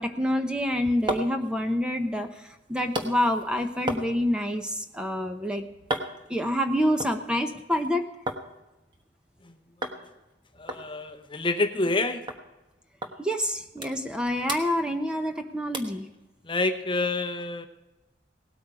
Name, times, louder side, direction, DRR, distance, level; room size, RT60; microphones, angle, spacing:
voice 1, 0.0-5.6 6.3-8.1 13.2-16.1, equal, 5° right, 5 dB, 0.8 m, -27 dB
sound 1, 0.6-8.5 8.8-9.4 9.8-10.0 10.3-10.4 10.7-12.0 12.3-12.4 13.0-13.2 13.5-14.2 14.4-15.4 15.7-16.0 16.5-16.6, right 1 dB, 25° right, 1.3 m, -36 dB
voice 2, 10.6-12.2 16.4-17.7, left 2 dB, 25° left, 7 dB, 0.8 m, -27 dB
18.5 x 8.6 x 4.9 m, 1.0 s
head